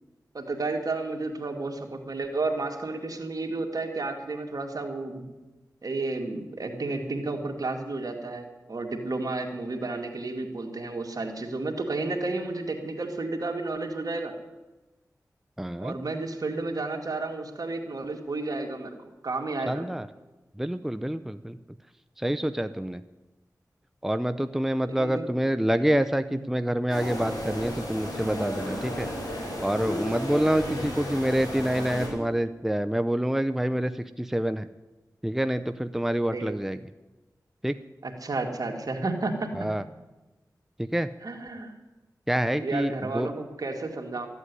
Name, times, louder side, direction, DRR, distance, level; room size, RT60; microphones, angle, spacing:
voice 1, 0.3-5.2 5.8-14.3 15.8-19.0 19.2-19.8 24.9-25.3 26.3-26.4 30.6-30.9 36.3-36.5 38.0-39.5 41.2-41.7 42.6-44.3, right 3 dB, 60° right, 2 dB, 2.2 m, -32 dB
voice 2, 15.6-16.0 19.7-20.1 20.6-21.6 22.2-23.0 24.0-29.1 29.6-34.7 35.2-36.8 37.6-37.8 39.6-39.8 40.8-41.1 42.3-43.3, right 1 dB, 5° right, 11 dB, 0.6 m, -27 dB
sound 1, 26.9-32.1, left 1 dB, 70° left, 5.7 m, -33 dB
13.5 x 8.3 x 9.7 m, 1.1 s
cardioid pair, 50°, 7 cm